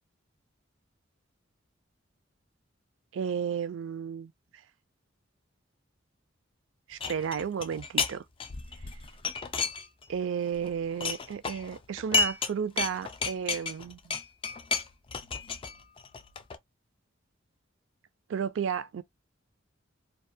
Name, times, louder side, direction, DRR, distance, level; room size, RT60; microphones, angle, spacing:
voice 1, 3.1-4.3 6.9-8.2 10.1-14.2 18.3-19.0, right 7 dB, 70° right, 0.3 m, -33 dB
sound 1, 7.0-8.1 8.4-10.2 10.5-12.5 12.8-16.6, left 4 dB, 25° left, 0.3 m, -32 dB
2.4 x 2.2 x 2.6 m
head